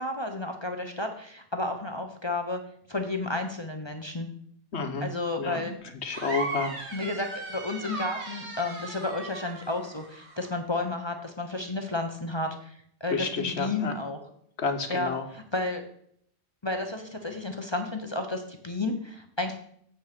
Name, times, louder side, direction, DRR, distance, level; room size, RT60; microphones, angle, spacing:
voice 1, 0.0-2.6 2.9-4.3 5.0-5.7 6.9-14.2 14.9-15.8 16.6-19.6, left 2 dB, 25° left, 4 dB, 0.9 m, -32 dB
voice 2, 4.7-5.1 5.4-5.7 6.0-6.8 13.1-13.9 14.6-15.2, left 4 dB, 70° left, 6 dB, 1.4 m, -30 dB
sound 1, 6.1-10.5, right 3 dB, 75° right, 1.9 m, -37 dB
7.8 x 6.1 x 6.0 m, 0.65 s
omnidirectional pair, 1.2 m